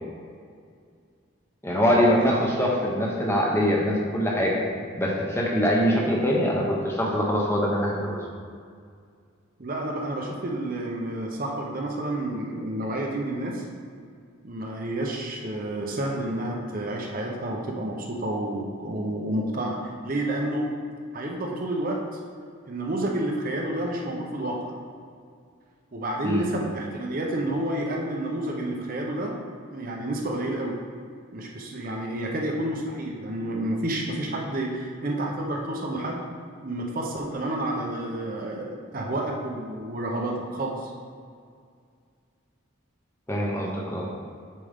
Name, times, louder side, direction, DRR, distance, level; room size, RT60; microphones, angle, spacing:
voice 1, 1.6-4.5 5.0-8.2 26.2-26.4 43.3-44.1, equal, 10° left, -3 dB, 1.0 m, -23 dB
voice 2, 9.6-13.6 14.4-20.7 21.1-22.0 22.7-24.7 25.9-29.4 29.7-30.8 31.3-36.2 36.6-40.9, right 1 dB, 40° right, -1 dB, 0.8 m, -30 dB
8.5 x 5.2 x 3.6 m, 2.2 s
head